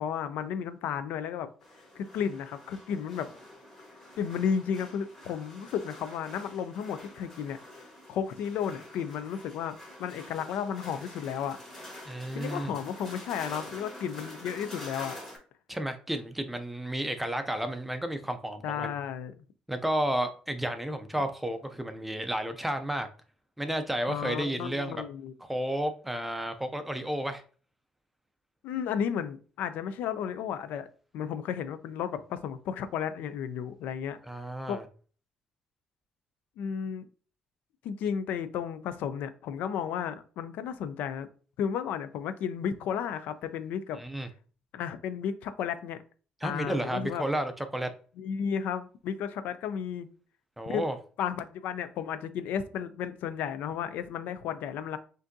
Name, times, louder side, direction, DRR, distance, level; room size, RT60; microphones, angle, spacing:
voice 1, 0.0-1.5 2.0-3.3 4.2-7.6 8.1-11.6 12.3-15.2 18.6-19.3 24.1-25.3 28.6-30.9 31.1-34.2 34.7-34.8 36.6-37.1 37.8-41.3 41.6-44.0 44.7-46.0 46.4-47.2 48.2-50.1 50.7-50.8 51.2-55.0, left 8 dB, 85° left, 12 dB, 0.4 m, -33 dB
sound 1, 1.6-15.4, left 1 dB, 15° left, 1.3 m, -47 dB
voice 2, 12.1-12.7 15.7-19.0 19.7-23.1 23.6-25.0 25.5-27.4 34.2-34.8 44.0-44.3 46.4-47.9 50.6-51.0, right 1 dB, 5° right, 8 dB, 0.4 m, -32 dB
5.9 x 2.6 x 2.6 m, 0.40 s
cardioid pair, 175°, 3 cm